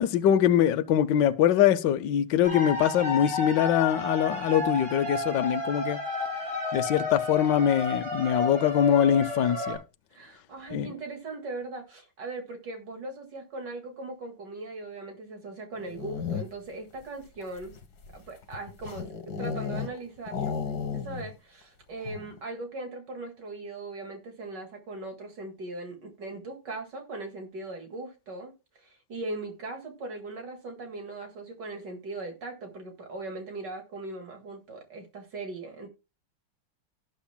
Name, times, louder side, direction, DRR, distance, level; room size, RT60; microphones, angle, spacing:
voice 1, 0.0-6.0 6.7-9.8 10.7-10.9, left 9 dB, 75° left, 1.3 m, -23 dB
sound 1, 2.4-9.8, left 3 dB, 40° right, 4.2 m, -31 dB
voice 2, 10.1-17.7 18.1-19.0 19.4-20.6 20.9-35.9, right 2 dB, 70° right, 2.6 m, -39 dB
sound 2, 15.7-16.8 17.4-20.0 20.3-21.4 21.6-21.7 22.0-22.4, left 6 dB, 60° left, 1.9 m, -34 dB
17.5 x 7.2 x 2.2 m
omnidirectional pair, 2.0 m